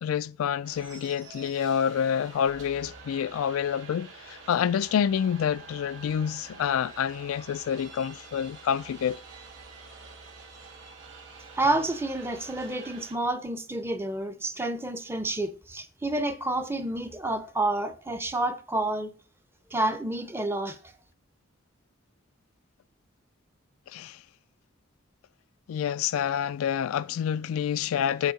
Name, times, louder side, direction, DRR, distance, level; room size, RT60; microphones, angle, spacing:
voice 1, 0.0-9.2 23.9-24.2 25.7-28.3, left 8 dB, 85° left, 0.3 m, -28 dB
sound 1, 0.6-13.1, right 4 dB, 60° right, 2.1 m, -47 dB
voice 2, 11.5-19.1 19.7-20.8, right 2 dB, 10° right, 0.6 m, -29 dB
8.1 x 4.4 x 5.0 m
head